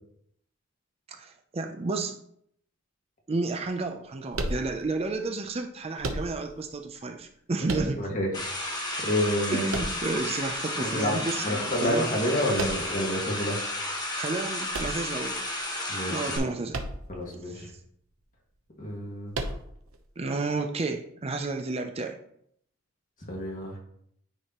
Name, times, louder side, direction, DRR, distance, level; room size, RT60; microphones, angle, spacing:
voice 1, 1.1-2.2 3.3-8.1 9.5-12.1 14.2-15.4 16.1-16.8 17.4-17.7 20.2-22.2, right 3 dB, 30° right, 5 dB, 0.4 m, -31 dB
sound 1, 4.3-5.1 6.0-6.7 7.7-8.4 9.7-10.5 12.6-13.1 14.7-15.6 16.7-17.3 17.5-17.6 19.3-20.0, right 2 dB, 75° right, 0.8 m, -34 dB
voice 2, 7.7-8.3 9.0-9.8 10.8-13.6 15.9-16.4 17.1-17.7 18.8-19.3 23.3-23.7, equal, 40° left, -2 dB, 1.9 m, -29 dB
sound 2, 8.3-16.4, left 1 dB, 20° left, 1.3 m, -32 dB
9.7 x 4.8 x 3.0 m, 0.70 s
head